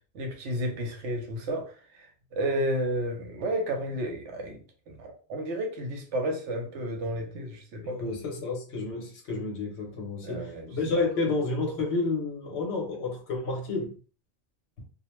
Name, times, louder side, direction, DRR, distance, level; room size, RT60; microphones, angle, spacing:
voice 1, 0.1-8.0 10.2-10.7 11.2-11.3, right 1 dB, 75° right, 1.0 m, -32 dB
voice 2, 7.8-13.9, left 3 dB, 65° left, 1.1 m, -30 dB
2.5 x 2.1 x 3.0 m
omnidirectional pair, 1.2 m